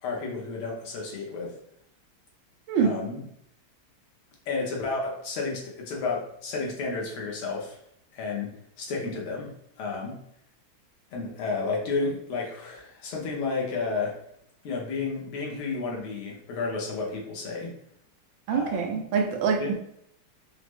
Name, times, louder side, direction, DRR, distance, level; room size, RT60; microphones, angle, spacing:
voice 1, 0.0-1.5 2.7-3.3 4.5-7.8 8.1-9.5 9.8-10.2 11.1-14.2 14.6-17.7 18.5-18.9 19.6-19.7, left 4 dB, 90° left, -2 dB, 1.9 m, -32 dB
voice 2, 18.5-19.7, right 6 dB, 75° right, 3 dB, 1.3 m, -25 dB
5.6 x 2.0 x 3.1 m, 0.73 s
omnidirectional pair, 2.3 m